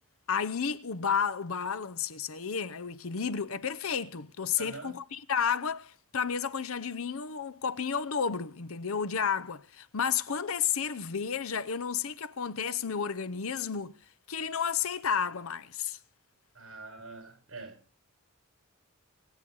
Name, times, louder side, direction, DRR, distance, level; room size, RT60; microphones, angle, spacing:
voice 1, 0.3-14.0 14.3-16.0, left 7 dB, 75° left, 0.7 m, -32 dB
voice 2, 4.6-5.0 16.5-17.8, right 3 dB, 65° right, 6.9 m, -44 dB
23.0 x 8.4 x 5.5 m
head